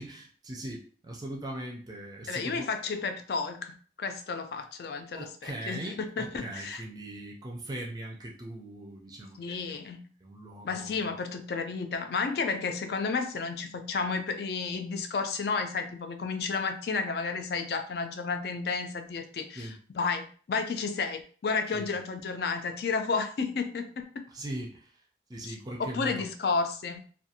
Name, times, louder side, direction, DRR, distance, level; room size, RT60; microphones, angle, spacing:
voice 1, 0.0-2.7 5.1-9.8 10.2-11.0 19.6-19.8 21.7-21.9 24.3-24.9 25.3-26.3, right 1 dB, 20° right, -1 dB, 0.4 m, -40 dB
voice 2, 2.3-6.8 9.4-10.1 10.6-24.2 25.4-25.5 25.9-27.0, left 4 dB, 60° left, 7 dB, 0.4 m, -32 dB
2.5 x 2.2 x 2.7 m, 0.43 s
head